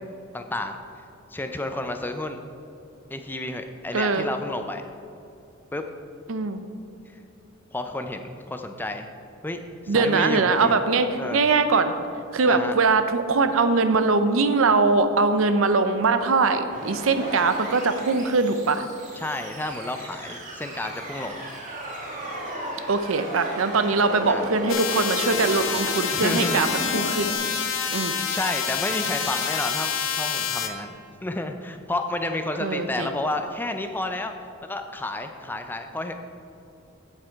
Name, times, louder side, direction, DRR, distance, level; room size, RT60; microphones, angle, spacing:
voice 1, 0.3-0.8 1.3-2.4 3.1-4.9 5.7-5.8 7.7-9.1 9.4-10.8 11.2-11.4 12.5-12.7 19.2-21.5 24.3-24.4 26.1-26.6 28.2-31.0 31.2-34.3 34.6-36.2, left 2 dB, 10° left, 6 dB, 0.4 m, -31 dB
voice 2, 3.9-4.3 6.3-6.6 9.9-11.9 12.3-18.8 22.9-27.3 27.9-28.1 32.6-33.1, right 4 dB, 75° right, 9 dB, 0.6 m, -22 dB
sound 1, 16.7-27.3, right 1 dB, 35° right, 1.7 m, -35 dB
sound 2, 24.7-30.7, left 7 dB, 65° left, 0.7 m, -27 dB
8.6 x 7.5 x 4.5 m, 2.7 s
head